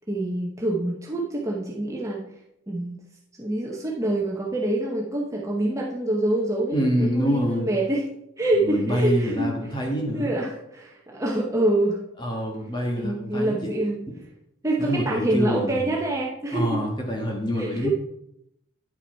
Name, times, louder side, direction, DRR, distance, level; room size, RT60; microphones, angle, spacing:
voice 1, 0.1-2.3 2.7-3.0 3.4-8.1 8.4-9.5 10.1-12.0 13.0-14.0 14.6-16.8 17.6-17.9, right 1 dB, 15° right, -3 dB, 1.0 m, -26 dB
voice 2, 6.7-7.7 8.6-10.3 12.2-13.5 14.8-15.9 16.5-17.9, equal, 20° left, 0 dB, 1.6 m, -26 dB
9.7 x 5.7 x 4.4 m, 0.80 s
head